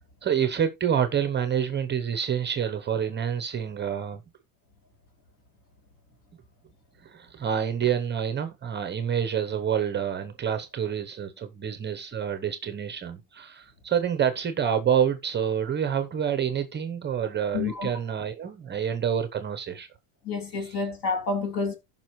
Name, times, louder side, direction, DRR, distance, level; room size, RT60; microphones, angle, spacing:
voice 1, 0.2-4.2 7.0-19.9 20.5-20.8, right 8 dB, 25° right, 0.8 m, -27 dB
voice 2, 17.5-17.9 20.2-21.8, left 4 dB, 45° left, 2.7 m, -29 dB
15.0 x 5.7 x 3.1 m
cardioid pair, 145°, 46 cm